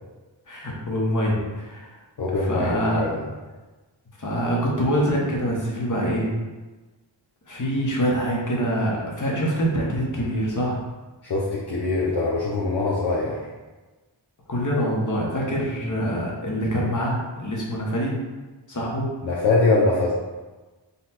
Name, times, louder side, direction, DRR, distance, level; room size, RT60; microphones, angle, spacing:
voice 1, 0.5-2.0 2.5-3.1 4.2-6.3 7.5-10.8 14.5-18.2 18.7-19.1, equal, 40° left, -3 dB, 1.2 m, -25 dB
voice 2, 2.2-3.2 11.2-13.4 19.2-20.1, left 3 dB, 55° left, -5 dB, 0.8 m, -23 dB
4.1 x 2.4 x 4.2 m, 1.2 s
cardioid pair, 45°, 46 cm